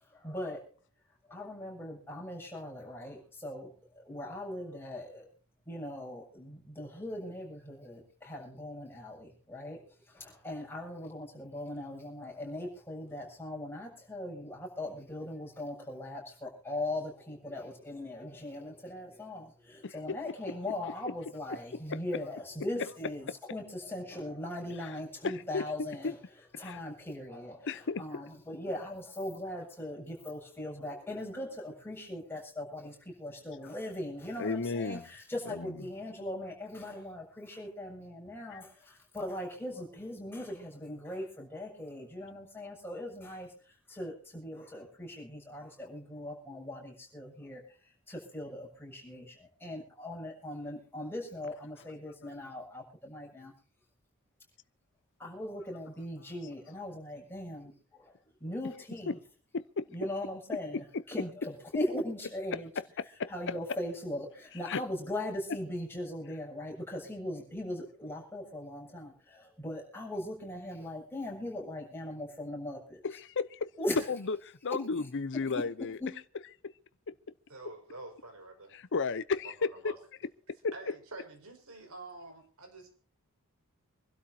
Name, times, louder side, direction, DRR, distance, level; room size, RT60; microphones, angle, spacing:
voice 1, 0.1-0.6 1.3-5.3 5.7-26.2 26.6-43.5 43.9-47.6 48.1-53.5 55.2-58.1 58.4-59.2 59.9-62.7 63.3-73.0 73.8-74.0 75.0-75.1 75.5-75.6 76.0-76.1, left 1 dB, 10° left, 7.1 m, -40 dB
voice 2, 19.8-20.2 21.1-21.2 21.5-22.0 22.8-22.9 24.8-25.0 25.2-25.7 26.0-26.1 26.5-26.8 27.7-28.2 34.4-35.1 35.5-35.7 38.5-38.6 59.1-59.2 59.5-59.9 60.7-61.0 62.5-63.5 64.7-64.8 73.0-73.7 74.1-76.0 76.6-76.7 77.1-77.2 78.7-80.0 80.6-80.7, left 4 dB, 55° left, 0.7 m, -34 dB
voice 3, 77.5-78.8 79.6-79.9 80.7-82.9, right 2 dB, 70° right, 5.6 m, -47 dB
26.5 x 12.5 x 2.8 m
head